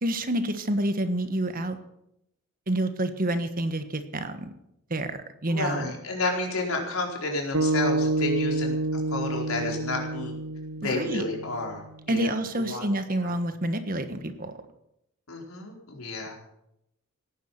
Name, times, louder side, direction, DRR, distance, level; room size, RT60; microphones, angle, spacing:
voice 1, 0.0-1.8 2.7-4.5 4.9-5.9 10.8-11.2 12.1-14.5, right 1 dB, 40° right, 9 dB, 1.4 m, -28 dB
voice 2, 5.5-10.3 10.8-12.8 13.2-13.3 15.3-16.4, left 2 dB, 80° left, 1 dB, 4.6 m, -31 dB
sound 1, 7.5-11.9, right 2 dB, 65° right, 0.8 m, -28 dB
17.5 x 10.0 x 7.5 m, 0.82 s
head